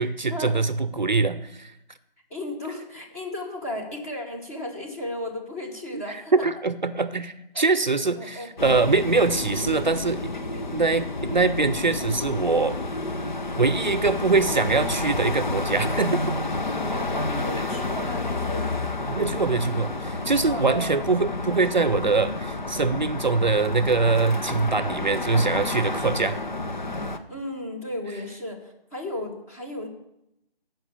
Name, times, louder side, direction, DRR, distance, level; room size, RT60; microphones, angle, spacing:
voice 1, 0.0-1.7 5.9-6.0 6.3-10.2 10.7-12.8 13.6-16.2 19.1-26.4, right 3 dB, 50° right, 13 dB, 0.7 m, -23 dB
voice 2, 2.3-6.3 7.5-7.6 8.2-8.5 10.5-10.6 16.9-18.8 20.4-21.1 27.3-29.9, left 1 dB, 15° left, 1 dB, 1.3 m, -34 dB
sound 1, 8.6-27.2, left 2 dB, 50° left, 1.1 m, -30 dB
15.5 x 6.0 x 7.3 m, 0.83 s
figure-of-eight pair, 160°, 30 cm